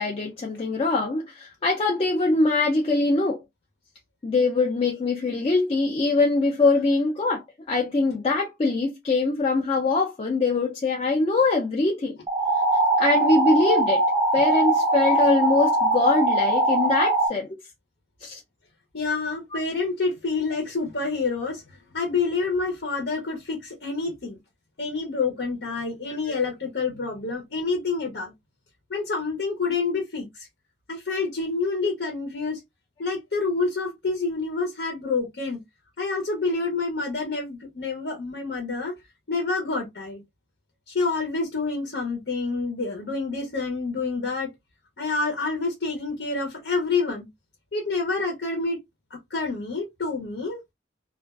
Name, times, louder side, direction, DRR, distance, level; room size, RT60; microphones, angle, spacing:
voice 1, 0.0-3.4 4.2-12.2 13.0-14.0 14.3-17.5 18.2-18.4, left 3 dB, 35° left, 0.4 m, -23 dB
sound 1, 12.3-17.3, right 2 dB, 20° right, 0.6 m, -21 dB
voice 2, 18.9-21.6 21.9-24.4 24.8-28.3 28.9-30.5 30.9-32.6 33.0-35.6 36.0-38.9 39.3-40.2 40.9-44.5 45.0-47.3 47.7-48.8 49.1-50.6, left 4 dB, 75° left, 0.8 m, -28 dB
2.4 x 2.3 x 2.3 m
head